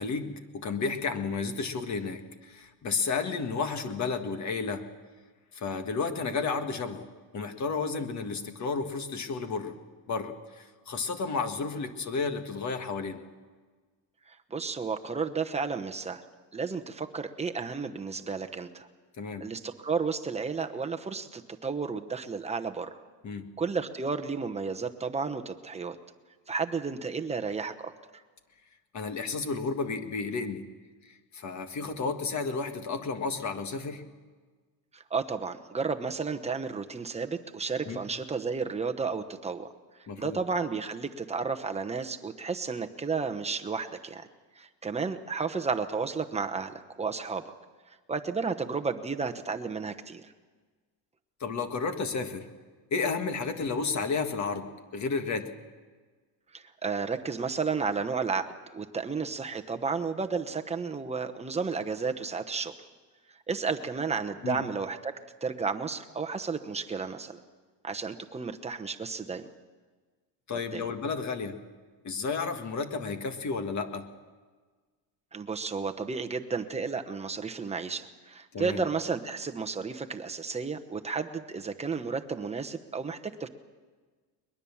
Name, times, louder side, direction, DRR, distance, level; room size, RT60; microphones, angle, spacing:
voice 1, 0.0-4.9 5.5-7.1 7.3-9.7 10.1-13.2 19.2-19.5 23.2-23.5 28.9-30.7 31.0-34.0 37.8-38.0 40.1-40.4 51.4-52.5 52.9-55.5 64.4-64.6 70.5-71.6 72.0-74.1 78.5-78.8, left 4 dB, 35° left, 7 dB, 1.7 m, -32 dB
voice 2, 14.3-16.2 16.5-18.9 19.4-23.0 23.6-26.0 26.5-27.9 34.9-39.7 40.2-44.3 44.6-47.4 48.1-50.3 56.5-62.7 63.5-65.1 65.4-67.4 67.8-69.5 70.7-70.8 75.3-83.5, right 5 dB, 15° right, 6 dB, 1.0 m, -32 dB
21.5 x 21.0 x 7.2 m, 1.4 s
cardioid pair, 145°, 46 cm